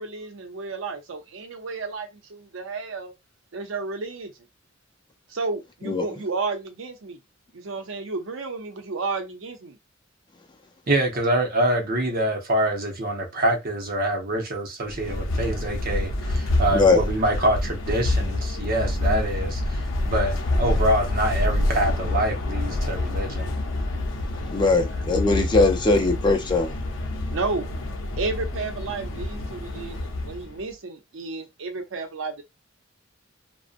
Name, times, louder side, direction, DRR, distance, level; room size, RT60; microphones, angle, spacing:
voice 1, 0.0-3.1 3.5-4.3 5.3-7.2 7.5-9.8 16.5-16.6 27.3-27.7 28.2-32.4, right 3 dB, 90° right, 0.6 m, -32 dB
voice 2, 10.9-23.5, right 1 dB, 50° right, 0.8 m, -25 dB
sound 1, 14.9-30.6, left 1 dB, 80° left, 0.6 m, -27 dB
voice 3, 16.7-17.0 24.5-26.7, left 3 dB, 25° left, 0.5 m, -20 dB
2.6 x 2.1 x 2.4 m
head